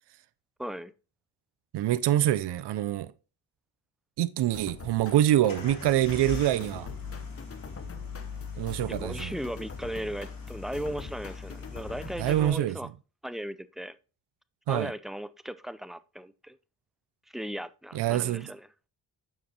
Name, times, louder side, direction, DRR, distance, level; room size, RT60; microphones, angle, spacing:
voice 1, 0.6-0.9 8.9-12.9 13.2-14.0 14.7-16.6 17.3-18.7, right 1 dB, ahead, 0.3 m, -37 dB
voice 2, 1.7-3.1 4.2-6.9 8.6-9.3 12.2-12.8 14.7-14.9 17.9-18.5, right 13 dB, 75° right, 0.5 m, -25 dB
sound 1, 4.5-12.8, left 4 dB, 35° left, 0.8 m, -45 dB
sound 2, 5.5-12.5, left 5 dB, 55° left, 1.9 m, -40 dB
7.4 x 5.9 x 2.8 m
cardioid pair, 70°, 41 cm